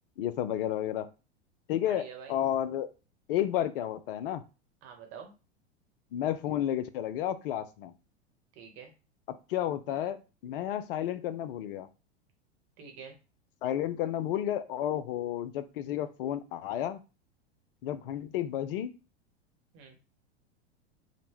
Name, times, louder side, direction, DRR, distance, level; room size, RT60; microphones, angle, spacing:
voice 1, 0.2-1.1 1.7-2.9 3.3-4.4 6.1-7.9 9.5-11.9 13.6-17.0 17.8-18.9, left 11 dB, 55° left, 12 dB, 0.5 m, -32 dB
voice 2, 1.8-2.4 4.8-5.3 8.5-8.9 12.8-13.2 19.7-20.0, right 6 dB, 45° right, 3 dB, 1.1 m, -47 dB
3.9 x 2.1 x 3.0 m, 0.31 s
figure-of-eight pair, 90°, 33 cm